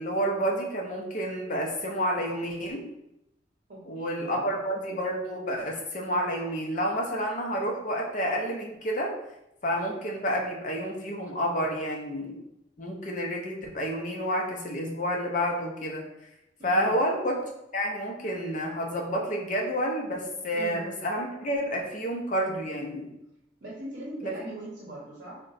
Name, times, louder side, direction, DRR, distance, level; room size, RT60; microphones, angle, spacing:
voice 1, 0.0-2.9 3.9-9.1 9.6-12.4 12.8-16.0 16.6-17.4 17.7-23.1 24.2-24.3, equal, 40° left, 0 dB, 0.6 m, -29 dB
voice 2, 3.7-4.5 16.6-17.0 20.5-20.9 23.6-25.4, right 1 dB, 45° right, -6 dB, 0.8 m, -40 dB
3.7 x 2.2 x 4.0 m, 0.83 s
head